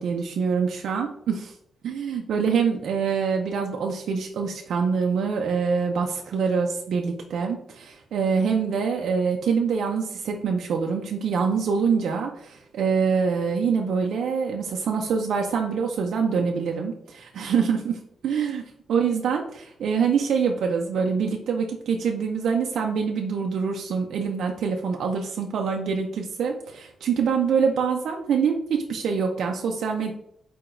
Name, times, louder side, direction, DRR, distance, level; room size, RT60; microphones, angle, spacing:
voice 1, 0.0-1.5 1.8-18.6 18.9-30.1, right 6 dB, 65° right, 2 dB, 0.4 m, -25 dB
4.7 x 4.2 x 2.5 m, 0.70 s
wide cardioid pair, 180°, 0 cm